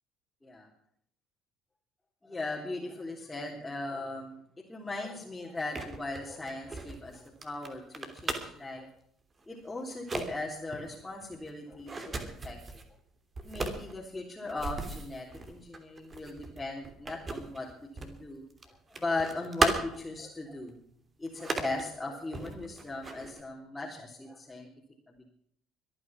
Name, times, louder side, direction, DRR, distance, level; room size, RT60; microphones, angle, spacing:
voice 1, 2.2-4.4 4.7-8.9 9.5-12.6 13.4-17.7 18.0-20.8 21.2-24.7 25.1-25.2, left 2 dB, 10° left, -2 dB, 3.7 m, -38 dB
sound 1, 5.6-8.7 9.4-9.6 9.9-10.3 10.7-12.9 13.3-18.2 18.5-20.2 20.6-20.7 21.3-21.8 22.3-23.4, right 3 dB, 25° right, 3.0 m, -36 dB
24.0 x 9.9 x 6.0 m, 0.68 s
figure-of-eight pair, 55°, 0 cm